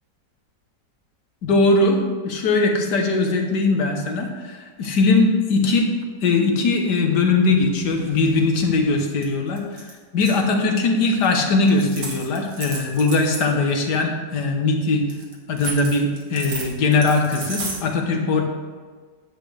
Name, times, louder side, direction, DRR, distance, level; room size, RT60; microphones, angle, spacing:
voice 1, 1.4-5.9 6.2-9.9 10.1-15.0 15.5-18.4, left 3 dB, 75° left, 3 dB, 1.8 m, -20 dB
sound 1, 4.8-5.2 7.5-8.9 9.2-9.3 9.6-10.4 11.2-11.3 11.6-13.5 15.1-17.8, right 3 dB, 70° right, 2.1 m, -34 dB
10.0 x 8.3 x 3.3 m, 1.5 s
omnidirectional pair, 1.8 m